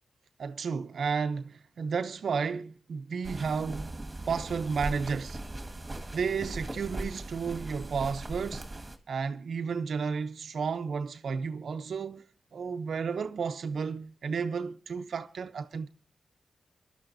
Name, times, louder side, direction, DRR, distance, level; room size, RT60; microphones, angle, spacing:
voice 1, 0.4-4.0 4.3-5.4 6.1-8.7 9.1-12.2 12.5-15.9, right 5 dB, 75° right, 0.7 m, -32 dB
sound 1, 3.2-9.0, right 2 dB, 25° right, 1.8 m, -39 dB
23.0 x 12.0 x 2.7 m
cardioid pair, 65°, 0 cm